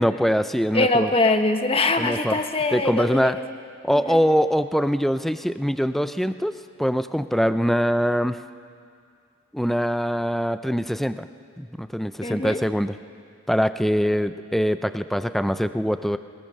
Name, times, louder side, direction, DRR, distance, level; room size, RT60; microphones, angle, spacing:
voice 1, 0.0-1.1 2.0-2.4 2.7-3.4 3.8-8.4 9.5-11.3 11.6-13.0 13.5-16.2, equal, ahead, 11 dB, 0.4 m, -23 dB
voice 2, 0.7-3.4 4.1-4.2 12.2-12.6, left 2 dB, 25° left, 6 dB, 1.1 m, -22 dB
20.0 x 19.5 x 6.6 m, 2.3 s
head